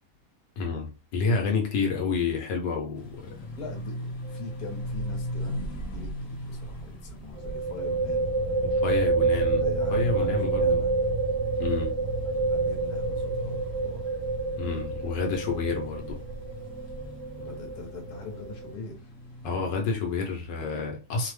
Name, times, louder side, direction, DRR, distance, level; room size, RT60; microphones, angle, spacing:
voice 1, 0.6-3.4 8.8-10.8 11.6-12.0 14.6-16.2 19.4-21.3, left 4 dB, 90° left, 1.4 m, -29 dB
sound 1, 2.9-20.6, equal, 45° left, 1.1 m, -40 dB
voice 2, 3.5-8.3 9.6-10.9 12.4-14.2 17.3-19.1, left 3 dB, 65° left, 1.3 m, -42 dB
sound 2, 4.3-4.5 4.8-4.9 7.4-18.7, right 3 dB, 80° right, 1.2 m, -28 dB
3.2 x 2.0 x 3.1 m
omnidirectional pair, 1.8 m